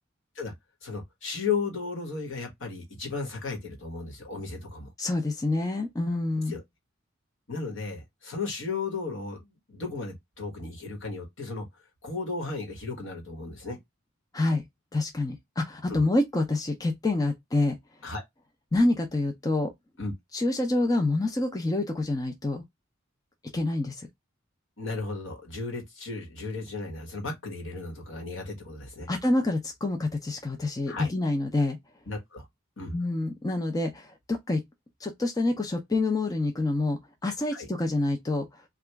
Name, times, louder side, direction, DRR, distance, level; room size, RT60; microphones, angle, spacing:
voice 1, 0.8-4.9 6.5-6.6 7.5-11.7 12.0-13.8 15.9-16.0 18.0-18.2 20.0-20.1 24.8-29.1 30.9-31.1 32.1-32.5 32.8-33.0 37.5-37.7, left 4 dB, 65° left, 1.3 m, -35 dB
voice 2, 5.0-6.6 14.3-14.6 14.9-17.8 18.7-19.7 20.3-22.6 23.5-24.1 29.1-31.8 32.9-34.6 35.0-38.6, left 2 dB, 15° left, 0.4 m, -27 dB
2.9 x 2.4 x 3.3 m
head